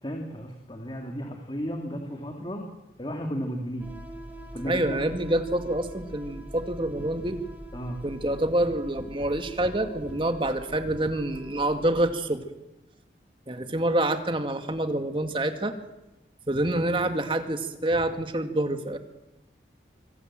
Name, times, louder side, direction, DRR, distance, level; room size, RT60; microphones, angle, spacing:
voice 1, 0.0-2.6 3.0-3.9 4.5-5.0 7.7-8.0, equal, 25° left, 3 dB, 2.7 m, -34 dB
sound 1, 3.8-12.2, right 1 dB, 10° right, 3.8 m, -44 dB
voice 2, 4.7-7.4 8.0-12.4 13.5-15.7 16.5-19.0, right 1 dB, 25° right, 7 dB, 2.1 m, -27 dB
25.0 x 25.0 x 7.6 m, 0.98 s
head